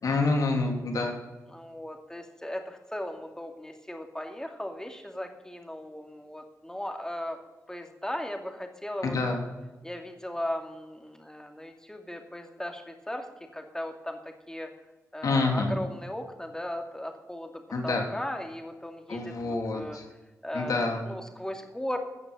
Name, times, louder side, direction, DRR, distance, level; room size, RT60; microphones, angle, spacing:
voice 1, 0.0-1.2 9.0-9.4 15.2-15.7 17.7-18.1 19.1-20.0 20.5-21.0, left 3 dB, 70° left, 2 dB, 3.2 m, -27 dB
voice 2, 1.5-7.4 7.7-9.2 9.8-13.3 13.5-14.7 15.1-20.0 20.4-22.0, left 1 dB, 10° left, 4 dB, 2.4 m, -37 dB
16.0 x 6.0 x 8.0 m, 1.1 s
cardioid pair, 55°, 6 cm